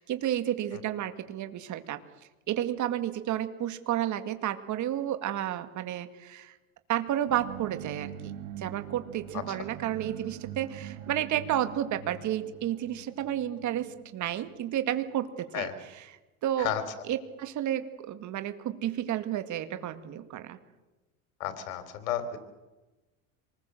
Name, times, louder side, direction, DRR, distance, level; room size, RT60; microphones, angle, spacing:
voice 1, 0.0-2.0 2.5-6.5 6.9-15.7 16.4-16.7 17.1-20.6, right 11 dB, 45° right, 10 dB, 2.2 m, -31 dB
sound 1, 7.3-15.0, right 10 dB, 85° right, 2.1 m, -43 dB
voice 2, 9.3-9.7 15.5-15.7 16.6-16.8 21.4-22.4, left 10 dB, 85° left, 10 dB, 3.6 m, -32 dB
27.0 x 20.5 x 7.9 m, 1.1 s
supercardioid pair, 110°, 40 cm